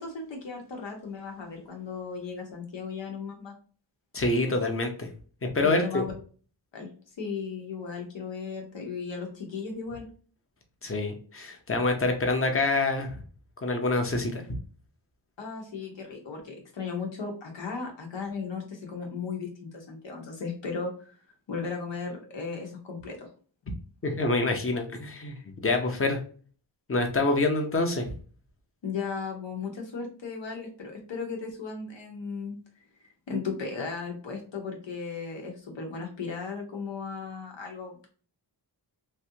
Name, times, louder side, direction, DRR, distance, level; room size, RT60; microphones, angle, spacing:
voice 1, 0.0-3.6 5.6-6.1 6.7-6.9 7.2-10.1 15.4-21.2 21.5-23.3 28.8-32.6 33.0-38.1, left 5 dB, 75° left, 1 dB, 1.2 m, -36 dB
voice 2, 4.1-5.1 5.5-6.0 10.8-13.1 13.6-14.4 24.0-25.4 25.6-26.2 26.9-28.1, left 2 dB, 30° left, 4 dB, 0.9 m, -26 dB
3.2 x 2.7 x 2.8 m, 0.41 s
wide cardioid pair, 80°, 44 cm